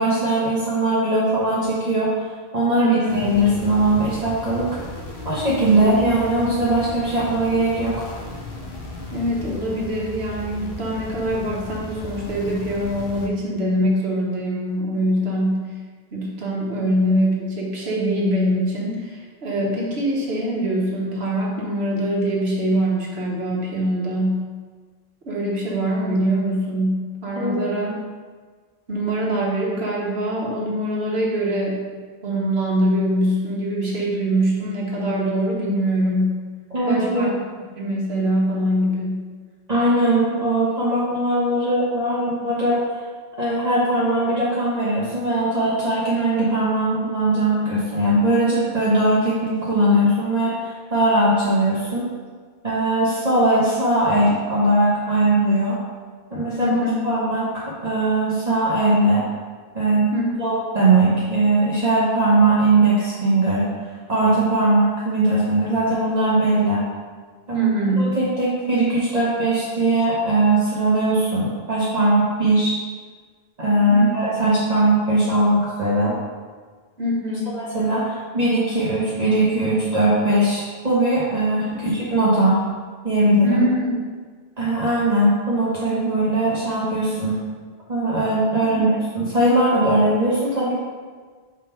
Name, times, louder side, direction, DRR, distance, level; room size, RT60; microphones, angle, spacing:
voice 1, 0.0-2.3 2.5-4.7 5.2-8.1 27.4-27.6 36.7-37.3 39.7-42.8 43.4-52.1 52.6-55.8 56.3-56.8 57.0-59.3 59.7-60.1 60.4-63.7 64.1-66.8 67.5-67.7 68.0-72.7 73.6-76.2 77.5-82.6 83.0-83.6 84.6-87.4 87.9-90.7, right 1 dB, 40° right, -8 dB, 1.1 m, -20 dB
voice 2, 2.8-3.1 5.7-5.8 9.1-15.7 16.1-24.5 25.3-28.0 28.9-31.8 32.2-36.4 36.8-37.3 37.8-39.3 56.6-57.0 60.1-60.3 67.5-68.1 73.9-74.1 77.0-77.5 81.7-81.9 83.4-84.0 88.6-88.8, equal, 90° right, -4 dB, 1.5 m, -23 dB
sound 1, 3.1-13.3, left 2 dB, 55° left, 1.0 m, -35 dB
5.0 x 3.7 x 5.6 m, 1.5 s
omnidirectional pair, 1.0 m